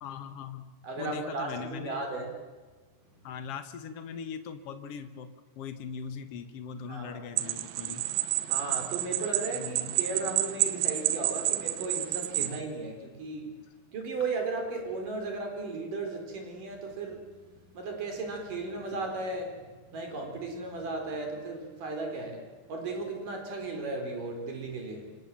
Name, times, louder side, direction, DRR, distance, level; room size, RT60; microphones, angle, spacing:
voice 1, 0.0-2.0 3.2-8.1 9.5-10.0, left 6 dB, 90° left, 9 dB, 1.3 m, -40 dB
voice 2, 0.8-2.3 6.9-7.2 8.5-13.6 13.9-25.2, right 3 dB, 50° right, 3 dB, 5.4 m, -36 dB
sound 1, 7.4-12.6, right 13 dB, 70° right, 2.6 m, -30 dB
27.0 x 26.5 x 7.5 m, 1.4 s
omnidirectional pair, 4.9 m